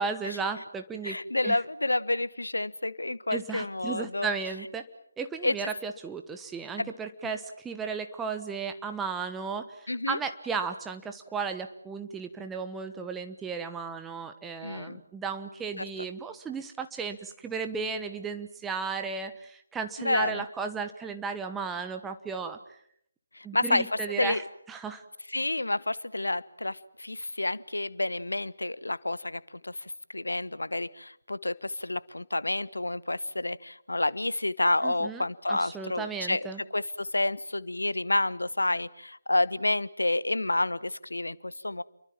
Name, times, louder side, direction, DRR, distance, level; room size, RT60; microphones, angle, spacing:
voice 1, 0.0-1.2 1.4-1.6 3.3-4.9 5.2-22.6 23.4-24.4 24.7-25.0 34.8-36.6, right 5 dB, 5° right, 6 dB, 1.2 m, -35 dB
voice 2, 1.0-4.3 5.4-5.5 6.8-6.9 9.9-10.2 14.6-15.0 15.8-15.9 20.0-20.4 23.3-24.4 25.3-29.8 30.1-36.5 36.7-41.8, left 2 dB, 75° left, 18 dB, 1.1 m, -29 dB
29.0 x 23.5 x 7.3 m, 0.71 s
figure-of-eight pair, 150°, 0 cm